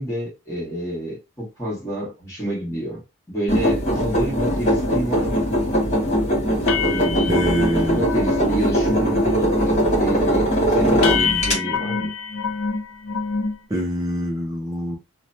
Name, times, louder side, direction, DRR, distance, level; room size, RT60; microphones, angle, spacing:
voice 1, 0.0-3.0 3.3-5.5 6.9-7.4 7.8-12.1, equal, 15° left, 1.4 m, -28 dB
sound 1, 3.5-11.5, equal, 35° left, 1.6 m, -20 dB
sound 2, 5.1-5.2 5.6-5.9 6.2-6.3 6.7-8.5 8.8-9.2 9.5-9.9 10.4-10.5 11.0-13.6, left 6 dB, 80° left, 0.4 m, -27 dB
voice 2, 7.3-8.1 13.7-15.0, equal, 15° right, 0.5 m, -24 dB
3.0 x 2.2 x 2.7 m
head